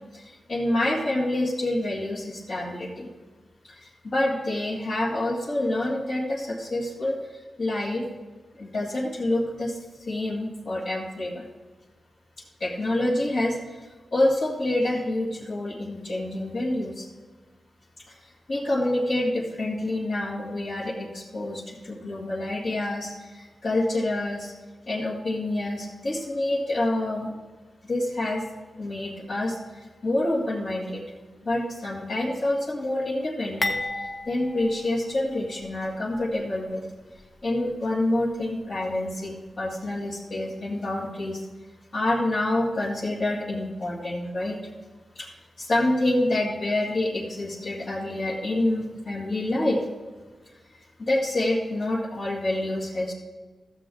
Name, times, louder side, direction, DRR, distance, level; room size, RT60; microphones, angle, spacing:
voice 1, 0.1-3.1 3.6-8.1 8.6-11.5 12.6-17.1 18.0-24.5 24.9-27.3 27.8-28.4 28.8-31.0 31.4-36.9 37.4-41.4 41.9-44.6 45.1-49.8 50.5-53.1, left 1 dB, 45° left, -6 dB, 1.9 m, -27 dB
sound 1, 33.6-35.8 36.1-36.3 37.2-37.3, left 2 dB, 25° left, 0.9 m, -33 dB
14.5 x 7.6 x 3.8 m, 1.3 s
wide cardioid pair, 145°, 0 cm